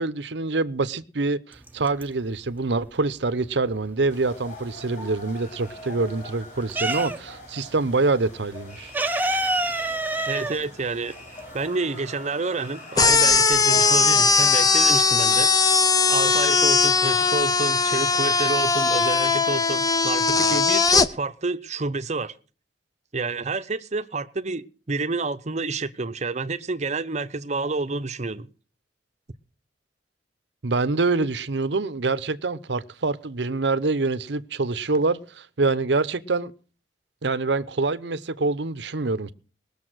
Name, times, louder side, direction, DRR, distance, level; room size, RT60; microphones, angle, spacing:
voice 1, 0.0-8.9 30.6-36.5 37.2-39.3, right 3 dB, 70° right, 0.8 m, -25 dB
sound 1, 1.6-2.5 2.8-4.7 5.1-7.5 7.8-7.9 8.2-11.8, right 1 dB, 10° right, 0.8 m, -27 dB
sound 2, 4.1-20.5, left 1 dB, 45° left, 7.0 m, -44 dB
voice 2, 10.3-11.2 11.5-15.5 16.1-22.3 23.1-28.5, right 3 dB, 40° right, 0.8 m, -29 dB
sound 3, 13.0-21.1, left 4 dB, 20° left, 0.7 m, -19 dB
20.0 x 7.0 x 6.3 m
head